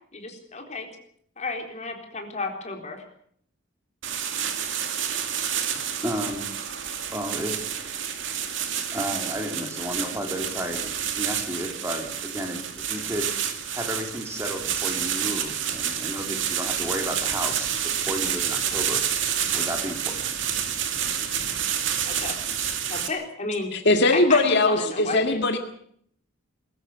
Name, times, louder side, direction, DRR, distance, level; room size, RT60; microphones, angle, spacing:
voice 1, 0.1-0.9 1.4-3.0 22.1-22.3 22.9-23.7 24.1-25.4, left 3 dB, 35° left, 3 dB, 4.1 m, -32 dB
sound 1, 4.0-23.1, right 8 dB, 70° right, 2.4 m, -29 dB
voice 2, 6.0-6.5 7.1-7.5 8.9-13.3 13.7-19.0 19.5-20.2, equal, 15° right, 3 dB, 3.5 m, -32 dB
voice 3, 23.7-25.6, left 2 dB, 60° left, 6 dB, 2.0 m, -20 dB
22.5 x 13.5 x 8.5 m, 0.65 s
head